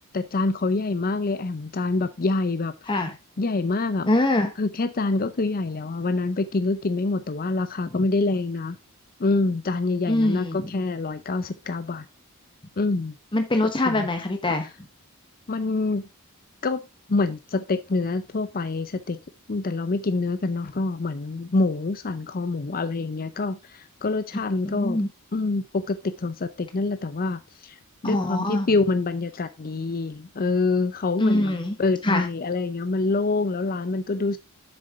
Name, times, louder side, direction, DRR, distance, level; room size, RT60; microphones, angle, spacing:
voice 1, 0.1-3.1 3.4-4.1 4.6-8.8 9.2-12.1 12.8-13.2 13.9-14.1 14.4-14.5 15.5-16.1 16.6-16.8 17.1-19.2 19.5-25.0 25.3-27.8 28.0-34.4, left 3 dB, 40° left, 0.6 m, -26 dB
voice 2, 4.1-4.5 7.9-8.0 10.1-10.7 13.3-14.7 24.6-25.1 28.0-28.7 31.2-31.7 32.0-32.2, left 1 dB, 20° left, 1.0 m, -23 dB
7.9 x 6.7 x 3.5 m
head